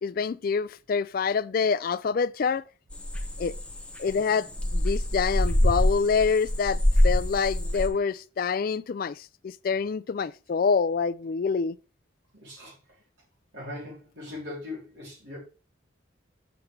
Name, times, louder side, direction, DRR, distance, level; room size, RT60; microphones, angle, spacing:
voice 1, 0.0-2.6 3.4-3.5 4.0-9.2 9.6-11.7, left 5 dB, 45° left, 0.3 m, -26 dB
sound 1, 2.9-7.9, left 1 dB, 5° left, 0.8 m, -25 dB
voice 2, 12.3-12.7 13.5-15.4, left 2 dB, 60° right, 3.3 m, -40 dB
7.7 x 7.0 x 3.3 m
head